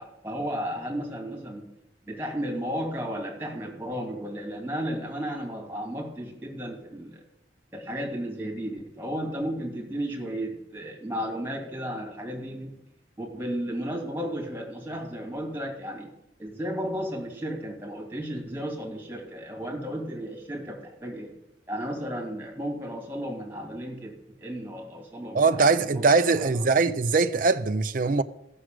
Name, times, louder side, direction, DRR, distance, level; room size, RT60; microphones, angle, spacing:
voice 1, 0.0-1.7 2.1-7.2 7.7-12.7 13.2-16.1 16.4-21.3 21.7-24.1 24.4-26.1 26.3-26.9, equal, 10° right, 2.8 m, -34 dB
voice 2, 25.3-28.2, right 4 dB, 50° right, 0.5 m, -22 dB
14.5 x 6.2 x 7.7 m
head